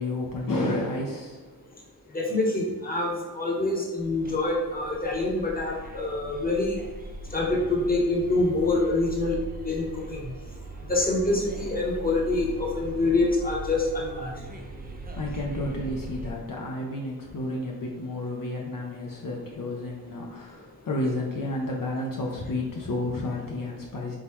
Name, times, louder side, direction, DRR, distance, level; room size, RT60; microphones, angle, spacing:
voice 1, 0.0-1.5 15.2-24.2, left 2 dB, 60° left, -2 dB, 0.7 m, -31 dB
voice 2, 2.1-6.8 7.3-9.4 9.6-10.3 10.9-14.4, left 2 dB, 25° left, -2 dB, 1.0 m, -26 dB
sound 1, 4.0-16.3, right 1 dB, 25° right, 0.5 m, -40 dB
4.0 x 3.8 x 3.0 m, 1.3 s
wide cardioid pair, 95°, 38 cm